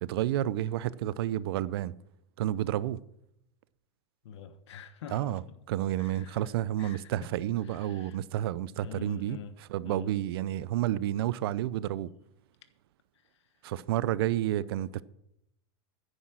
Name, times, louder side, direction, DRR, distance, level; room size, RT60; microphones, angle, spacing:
voice 1, 0.0-1.9 2.4-3.0 5.1-5.4 5.7-12.1 13.6-15.0, right 13 dB, 60° right, 0.5 m, -30 dB
voice 2, 4.2-5.6 6.0-6.5 6.8-7.3 7.6-8.2 8.7-9.5 9.8-10.1 13.1-13.5, left 6 dB, 80° left, 1.3 m, -46 dB
10.0 x 9.5 x 6.2 m
supercardioid pair, 165°, 15 cm